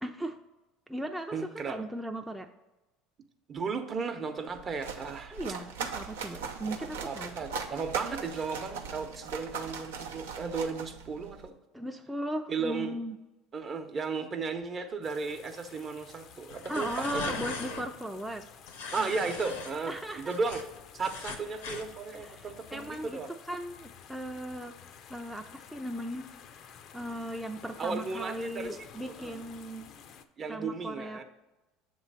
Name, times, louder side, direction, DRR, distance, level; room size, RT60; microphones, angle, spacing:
voice 1, 0.0-0.4 0.9-2.5 5.3-7.4 11.7-13.2 16.7-18.5 19.9-20.3 22.2-23.2 23.5-24.8 25.1-26.3 26.9-29.9 30.5-31.2, right 1 dB, 5° right, 3 dB, 0.4 m, -37 dB
voice 2, 1.3-1.8 3.5-5.4 7.0-11.5 12.5-13.0 13.5-17.4 17.7-17.8 18.9-20.6 20.9-23.3 27.8-29.4 30.4-31.2, right 4 dB, 40° right, 7 dB, 0.7 m, -35 dB
sound 1, 4.5-11.5, right 6 dB, 85° right, 0.6 m, -39 dB
sound 2, 15.0-30.2, left 8 dB, 55° left, 0.4 m, -52 dB
sound 3, 16.5-17.9 18.7-19.7 20.1-21.9, left 5 dB, 85° left, 0.8 m, -39 dB
7.2 x 3.1 x 5.4 m, 1.0 s
hypercardioid pair, 80°, 0 cm